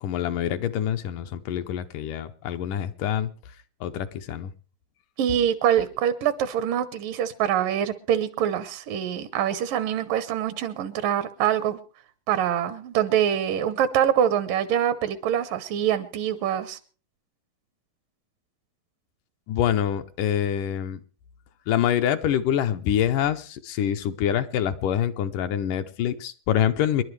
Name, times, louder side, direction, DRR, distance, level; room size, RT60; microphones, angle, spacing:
voice 1, 0.0-3.3 3.8-4.5 19.5-21.0 21.7-27.0, left 10 dB, 75° left, 8 dB, 2.3 m, -25 dB
voice 2, 5.2-11.8 12.3-16.8, right 10 dB, 80° right, 12 dB, 2.6 m, -24 dB
27.5 x 11.5 x 3.3 m, 0.39 s
omnidirectional pair, 3.9 m